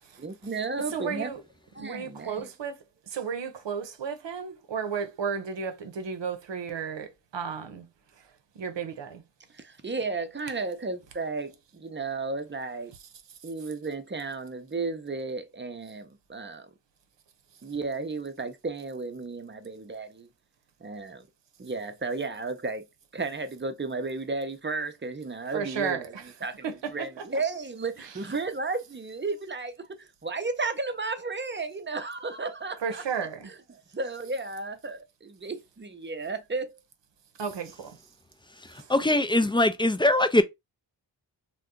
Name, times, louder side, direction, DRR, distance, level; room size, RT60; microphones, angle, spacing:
voice 1, 0.2-1.3 1.7-2.5 9.5-12.9 13.4-16.7 17.6-20.3 20.8-21.3 21.6-22.9 23.1-26.1 26.4-33.0 33.4-36.8, right 3 dB, 25° right, 0.7 m, -33 dB
voice 2, 0.9-1.4 1.8-2.8 3.1-7.9 8.6-9.2 25.5-26.2 26.6-27.1 32.8-33.5 37.4-38.0 38.8-38.9, right 6 dB, 70° right, 0.8 m, -33 dB
voice 3, 38.9-40.4, left 1 dB, 10° left, 0.4 m, -21 dB
2.7 x 2.3 x 3.6 m
cardioid pair, 60°, 44 cm